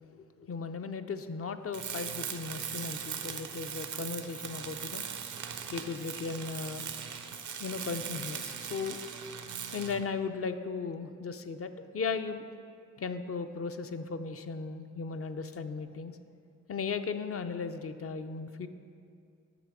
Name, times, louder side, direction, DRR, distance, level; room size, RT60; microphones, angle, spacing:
voice 1, 0.0-5.0 5.7-9.1 9.7-12.4 13.0-16.2 16.7-18.7, left 5 dB, 50° left, 8 dB, 0.5 m, -37 dB
Tools, 1.7-10.1, right 7 dB, 70° right, 0.6 m, -39 dB
7.7 x 5.8 x 4.8 m, 2.3 s
cardioid pair, 45°, 30 cm